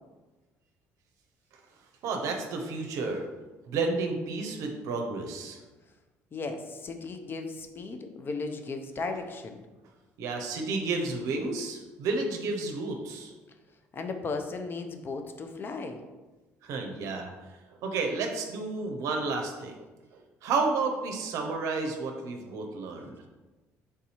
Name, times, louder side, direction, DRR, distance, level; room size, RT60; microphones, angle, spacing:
voice 1, 2.0-3.2 3.7-5.6 10.2-13.3 16.6-17.5 17.8-19.9 20.1-23.2, right 3 dB, 70° right, 3 dB, 0.6 m, -31 dB
voice 2, 6.3-9.6 13.9-16.0, left 3 dB, 40° left, 6 dB, 0.6 m, -36 dB
3.6 x 2.7 x 4.2 m, 1.2 s
supercardioid pair, 75°, 6 cm